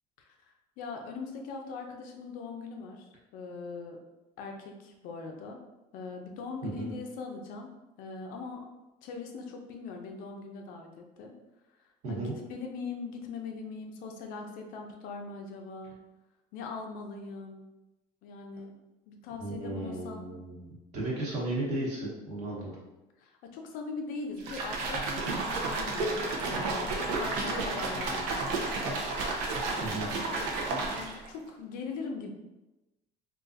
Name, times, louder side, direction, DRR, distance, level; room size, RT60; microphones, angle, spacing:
voice 1, 0.2-3.0 3.3-4.0 4.4-5.6 5.9-7.7 8.0-8.7 9.0-11.3 12.1-16.0 16.5-17.6 18.2-18.8 19.1-20.2 23.2-30.5 30.9-32.3, left 4 dB, 55° left, 3 dB, 0.5 m, -41 dB
voice 2, 12.0-12.3 19.4-22.7 29.8-30.1, right 2 dB, 45° right, -5 dB, 1.0 m, -34 dB
sound 1, 24.4-31.3, right 3 dB, 85° right, 0.6 m, -32 dB
3.9 x 2.5 x 2.5 m, 1.0 s
cardioid pair, 180°, 17 cm